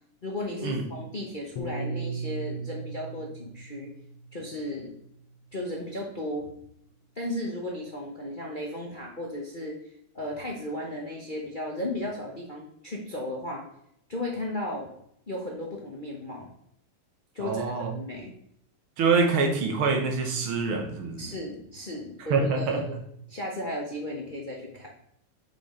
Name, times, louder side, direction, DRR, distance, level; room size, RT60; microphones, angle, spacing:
voice 1, 0.2-3.9 4.3-4.9 5.5-6.5 7.2-9.8 10.1-13.7 14.1-14.9 15.3-16.5 17.3-18.3 21.2-23.0 23.3-24.9, left 1 dB, 35° left, -1 dB, 0.8 m, -35 dB
Piano, 1.6-6.0, right 3 dB, 90° left, 1.9 m, -38 dB
voice 2, 17.4-17.9 19.0-21.3 22.3-22.8, right 4 dB, 70° right, 3 dB, 1.9 m, -25 dB
7.5 x 5.4 x 3.8 m, 0.70 s
omnidirectional pair, 2.4 m